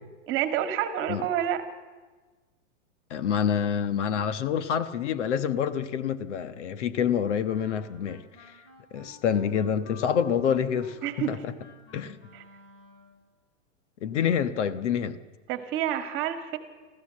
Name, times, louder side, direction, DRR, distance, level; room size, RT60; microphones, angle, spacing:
voice 1, 0.3-1.6 11.0-11.4 12.3-12.4 15.5-16.6, right 10 dB, 30° right, 8 dB, 1.9 m, -28 dB
voice 2, 3.1-8.5 8.9-11.5 11.9-12.2 14.0-15.2, left 8 dB, 65° left, 11 dB, 1.4 m, -27 dB
Wind instrument woodwind instrument, 7.5-13.2, left 3 dB, 35° left, 5.0 m, -51 dB
25.0 x 15.0 x 7.6 m, 1.3 s
hypercardioid pair, 145°, 38 cm